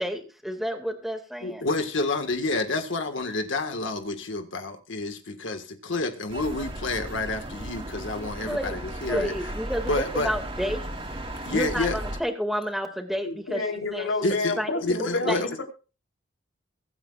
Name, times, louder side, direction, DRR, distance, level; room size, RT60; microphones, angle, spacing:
voice 1, 0.0-1.6 8.5-8.7 9.1-10.9 11.5-13.6 13.9-14.7 15.3-15.4, equal, ahead, 2.2 m, -30 dB
voice 2, 1.4-9.3 9.9-10.3 11.4-12.0 14.2-15.5, left 2 dB, 65° left, 1.7 m, -29 dB
sound 1, 6.3-12.2, right 1 dB, 30° right, 3.1 m, -35 dB
voice 3, 13.2-15.6, left 3 dB, 85° left, 3.6 m, -29 dB
24.0 x 9.6 x 2.5 m
head